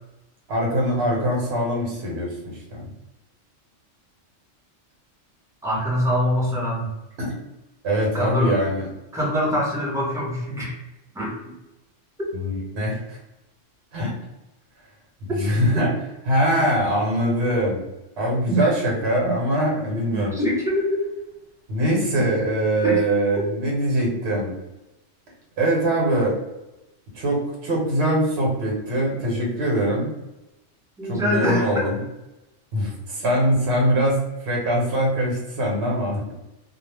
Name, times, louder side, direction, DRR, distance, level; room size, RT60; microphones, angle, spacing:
voice 1, 0.5-2.3 2.7-2.9 7.2-7.3 7.8-8.9 12.3-13.2 13.9-14.1 15.4-16.0 16.2-17.8 18.2-20.4 21.7-24.5 25.6-26.4 27.1-30.2 31.0-32.0 32.7-36.2, right 1 dB, 60° right, -2 dB, 1.0 m, -22 dB
voice 2, 5.6-6.9 8.1-8.6 9.1-10.8 11.1-11.3 18.5-18.6 20.1-21.0 22.8-23.0 31.0-31.9, equal, 5° right, -6 dB, 0.6 m, -24 dB
2.2 x 2.1 x 3.2 m, 0.97 s
omnidirectional pair, 1.3 m